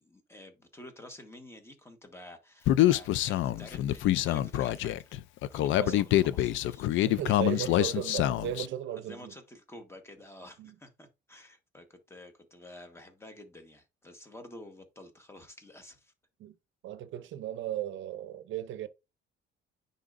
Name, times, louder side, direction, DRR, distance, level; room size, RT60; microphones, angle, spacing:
voice 1, 0.0-5.2 5.5-8.0 8.9-16.1, left 1 dB, 10° left, 1.3 m, -50 dB
Human voice, 2.7-8.7, left 14 dB, 70° left, 0.4 m, -26 dB
voice 2, 5.7-6.0 7.1-9.3 10.6-10.7 16.4-16.5 16.8-18.9, right 11 dB, 70° right, 0.6 m, -36 dB
9.9 x 3.9 x 2.5 m
cardioid pair, 135°, 21 cm